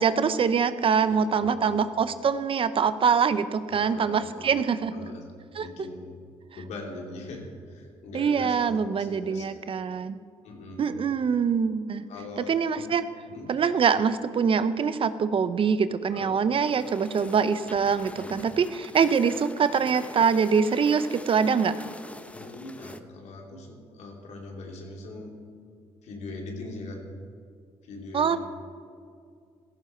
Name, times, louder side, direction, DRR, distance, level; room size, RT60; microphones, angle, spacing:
voice 1, 0.0-5.1 5.5-5.7 8.1-10.2 10.8-12.0 12.4-13.0 13.5-21.7 28.1-28.4, right 6 dB, 50° right, 13 dB, 0.8 m, -24 dB
voice 2, 1.1-1.8 3.7-4.6 4.9-5.3 5.6-6.2 6.5-9.4 10.4-10.9 12.1-12.9 13.3-13.5 16.1-16.4 18.1-18.4 22.3-25.3 26.0-27.1 27.8-28.4, left 2 dB, 75° left, 0 dB, 3.1 m, -41 dB
sound 1, 16.6-23.0, left 1 dB, 10° left, 0.9 m, -44 dB
16.0 x 14.5 x 4.5 m, 2.3 s
supercardioid pair, 70°, 12 cm